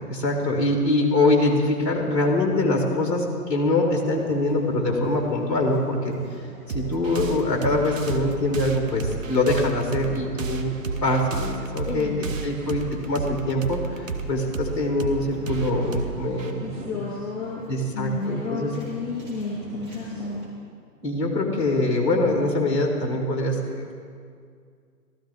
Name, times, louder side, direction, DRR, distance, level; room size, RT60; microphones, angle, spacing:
voice 1, 0.0-6.2 6.7-10.7 11.0-17.1 17.7-18.7 21.0-23.9, left 2 dB, 20° left, 1 dB, 1.6 m, -24 dB
sound 1, 3.9-20.4, right 1 dB, 25° right, 3.1 m, -43 dB
sound 2, 6.7-17.8, right 4 dB, 50° right, 1.0 m, -33 dB
voice 2, 11.9-12.3 12.6-12.9 16.5-20.4, left 3 dB, 55° left, -5 dB, 2.4 m, -32 dB
15.5 x 13.0 x 3.6 m, 2.2 s
figure-of-eight pair, 140°, 49 cm